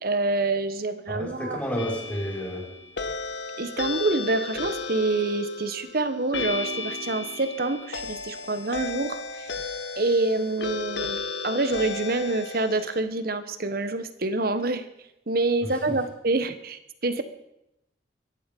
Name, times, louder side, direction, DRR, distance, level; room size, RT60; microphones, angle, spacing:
voice 1, 0.0-1.6 3.6-9.5 10.0-14.8 15.3-17.2, right 2 dB, 55° right, 11 dB, 1.3 m, -27 dB
voice 2, 1.1-2.7 15.9-16.0, equal, 10° left, -2 dB, 5.3 m, -31 dB
sound 1, 1.8-13.0, left 4 dB, 90° left, 1.5 m, -34 dB
23.5 x 11.0 x 5.4 m, 0.86 s
head